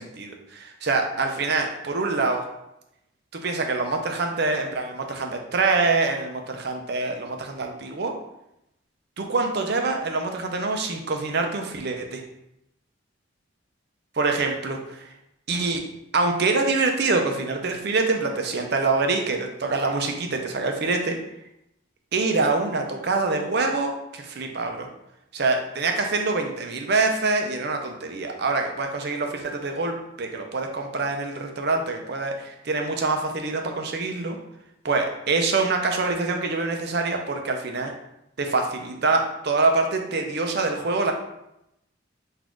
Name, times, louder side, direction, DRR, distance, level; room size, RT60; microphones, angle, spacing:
voice 1, 0.0-2.5 3.3-8.1 9.2-12.2 14.2-15.0 15.5-15.8 16.1-21.2 22.1-24.9 25.3-34.4 34.8-37.9 38.4-41.1, right 3 dB, 55° right, 4 dB, 0.6 m, -25 dB
4.1 x 2.6 x 4.5 m, 0.83 s
head